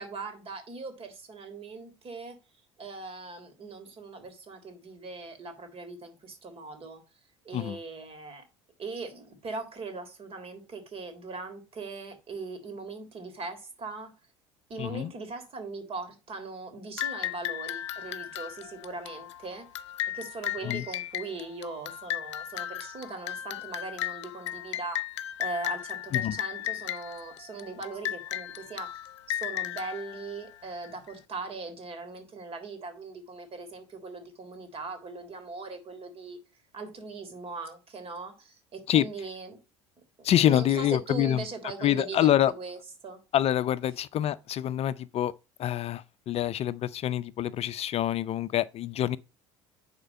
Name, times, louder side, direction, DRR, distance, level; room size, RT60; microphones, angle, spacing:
voice 1, 0.0-2.4 2.8-7.0 7.5-8.4 8.8-14.1 14.7-19.7 20.1-25.0 25.4-29.0 29.3-36.4 36.7-39.6 40.2-43.2, right 3 dB, 40° right, 3.6 m, -40 dB
voice 2, 14.8-15.1 20.6-20.8 26.1-26.4 38.9-39.1 40.2-41.4 41.8-42.5 43.3-45.3 45.6-49.2, left 11 dB, 45° left, 0.5 m, -26 dB
sound 1, 17.0-31.1, left 12 dB, 85° left, 0.6 m, -36 dB
10.0 x 4.4 x 5.3 m
hypercardioid pair, 70°, 15 cm